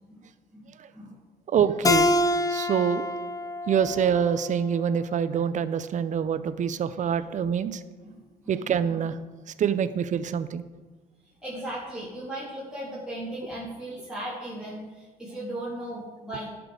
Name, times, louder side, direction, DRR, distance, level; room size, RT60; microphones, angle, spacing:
voice 1, 0.9-1.2 3.7-3.8 8.0-8.6 8.9-9.0 11.4-16.5, right 1 dB, 5° right, -10 dB, 3.1 m, -37 dB
voice 2, 1.5-2.1 2.5-3.1 3.7-7.8 8.5-9.1 9.6-10.6, right 8 dB, 45° right, 14 dB, 0.6 m, -25 dB
Keyboard (musical), 1.8-5.1, left 2 dB, 20° left, 0.6 m, -26 dB
11.5 x 6.2 x 4.9 m, 1.3 s
cardioid pair, 95°, 17 cm